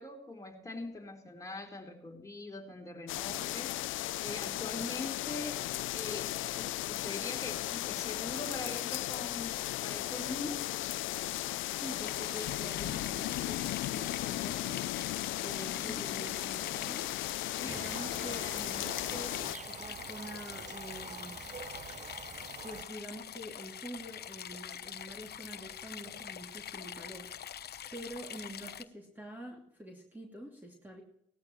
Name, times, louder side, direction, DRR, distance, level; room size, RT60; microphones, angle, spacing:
voice 1, 0.0-3.8 4.2-5.6 5.9-10.7 15.7-16.0 17.6-17.8 26.0-26.1, left 2 dB, 15° left, 2 dB, 4.0 m, -42 dB
sound 1, 3.1-19.6, left 16 dB, 80° left, 0.4 m, -36 dB
voice 2, 11.7-14.8 15.4-17.1 17.6-21.5 22.6-27.3 27.9-31.0, equal, 10° right, 0 dB, 2.7 m, -46 dB
sound 2, 12.0-28.8, left 9 dB, 55° left, 0.8 m, -45 dB
sound 3, 17.7-22.8, right 6 dB, 35° right, 0.9 m, -46 dB
19.0 x 13.0 x 3.1 m, 0.74 s
cardioid pair, 90°, 20 cm